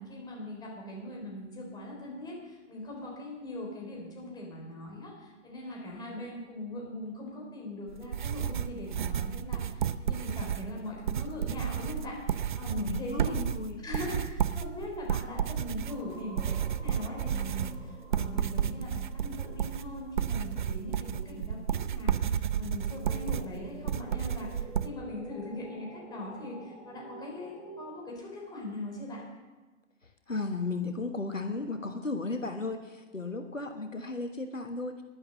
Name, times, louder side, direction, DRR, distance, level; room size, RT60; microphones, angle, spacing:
voice 1, 0.0-13.4 13.8-29.2, left 1 dB, 10° left, -1 dB, 3.6 m, -41 dB
sound 1, 7.9-24.9, right 9 dB, 40° right, 0.5 m, -32 dB
voice 2, 12.8-13.8 30.0-35.0, left 3 dB, 85° left, 6 dB, 1.4 m, -35 dB
sound 2, 15.9-28.0, equal, 5° right, 3.0 m, -50 dB
12.0 x 11.0 x 7.7 m, 1.2 s
figure-of-eight pair, 120°, 38 cm